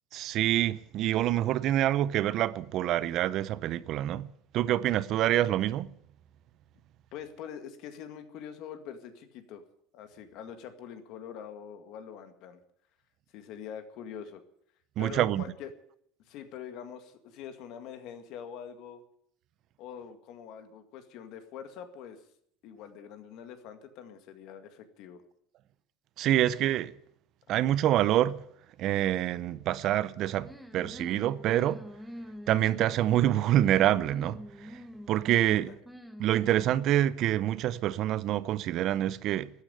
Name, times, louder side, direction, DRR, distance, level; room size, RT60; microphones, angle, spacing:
voice 1, 0.1-4.3 4.5-5.9 15.0-15.4 26.2-26.9 27.5-28.4 28.8-31.8 32.5-34.4 35.1-35.7 36.2-39.5, right 12 dB, 45° right, 0.6 m, -26 dB
voice 2, 7.1-9.6 9.9-12.6 13.3-14.4 15.0-15.7 16.3-19.0 19.8-22.2 22.6-25.2 35.5-35.8, left 8 dB, 55° left, 2.0 m, -44 dB
sound 1, 30.4-36.8, equal, ahead, 1.0 m, -45 dB
13.5 x 9.5 x 9.7 m
cardioid pair, 150°, 0 cm